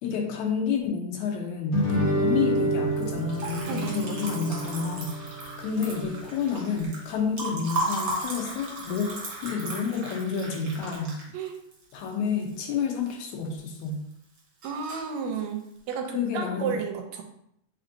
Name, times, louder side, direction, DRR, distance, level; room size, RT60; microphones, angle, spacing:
voice 1, 0.0-9.2 9.4-11.2 11.9-14.0 16.1-16.8, left 5 dB, 80° left, 2 dB, 2.1 m, -29 dB
Guitar, 1.7-6.8, equal, 60° left, 1.0 m, -29 dB
Liquid, 2.9-13.1 13.4-14.1 14.4-15.2, right 2 dB, 50° right, 1.7 m, -36 dB
voice 2, 3.7-4.2 11.3-11.6 14.6-17.2, right 6 dB, 80° right, 4 dB, 1.7 m, -32 dB
4.4 x 4.0 x 2.6 m, 0.75 s
omnidirectional pair, 3.3 m